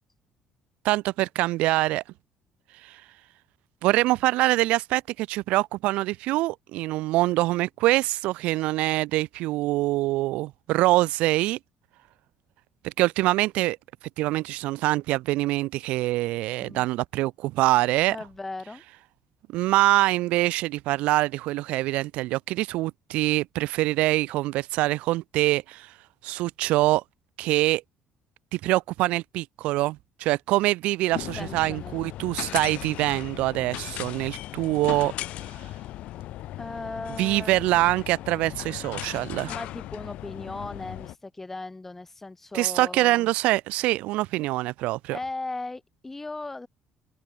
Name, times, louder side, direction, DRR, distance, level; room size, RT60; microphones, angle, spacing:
voice 1, 0.8-2.0 2.8-3.0 3.8-11.6 12.8-13.8 14.2-18.2 19.5-25.9 26.2-27.0 27.4-27.8 28.5-35.1 37.2-39.6 42.5-45.2, right 18 dB, 85° right, 0.5 m, -24 dB
voice 2, 18.1-18.8 31.4-32.0 36.6-37.6 39.5-43.3 45.1-46.7, left 2 dB, 15° left, 3.3 m, -37 dB
sound 1, 31.1-41.2, left 15 dB, 70° left, 1.4 m, -37 dB
open air
cardioid pair, 125°, 2 cm